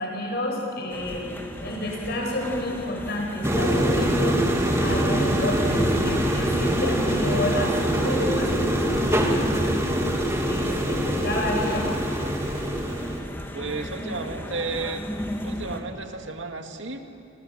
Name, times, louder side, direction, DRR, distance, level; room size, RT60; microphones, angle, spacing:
voice 1, 0.0-4.4 4.8-9.7 10.5-11.9, left 1 dB, 60° left, 1 dB, 7.1 m, -30 dB
sound 1, 0.9-15.8, equal, 10° left, 2.4 m, -36 dB
sound 2, 3.4-13.2, right 1 dB, 15° right, 2.8 m, -24 dB
voice 2, 13.5-15.0 15.4-17.0, right 3 dB, 85° right, 4 dB, 2.3 m, -32 dB
28.5 x 26.5 x 7.7 m, 2.5 s
head